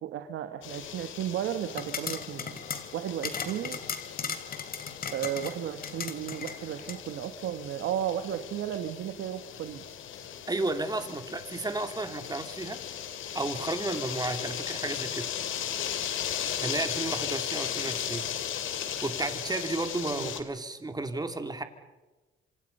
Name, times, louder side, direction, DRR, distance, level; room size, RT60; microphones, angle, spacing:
voice 1, 0.0-2.6 2.9-3.8 5.1-9.8 20.1-20.3, right 10 dB, 85° right, 8 dB, 1.5 m, -34 dB
sound 1, 0.6-20.4, left 9 dB, 80° left, 2.7 m, -37 dB
sound 2, 1.7-7.0, left 6 dB, 50° left, 3.1 m, -37 dB
voice 2, 10.5-12.8 13.3-15.3 16.6-18.2 19.0-21.6, right 2 dB, 20° right, 7 dB, 3.1 m, -33 dB
28.0 x 26.5 x 5.6 m, 1.2 s
cardioid pair, 90°, 20 cm